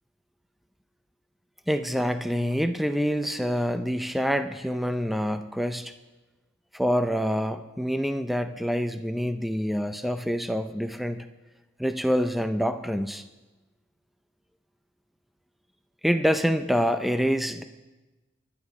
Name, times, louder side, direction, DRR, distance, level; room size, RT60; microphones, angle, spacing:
voice 1, 1.7-5.9 6.7-11.2 11.8-13.2 16.0-17.6, equal, ahead, 8 dB, 0.4 m, -26 dB
24.0 x 11.5 x 3.6 m, 1.1 s
head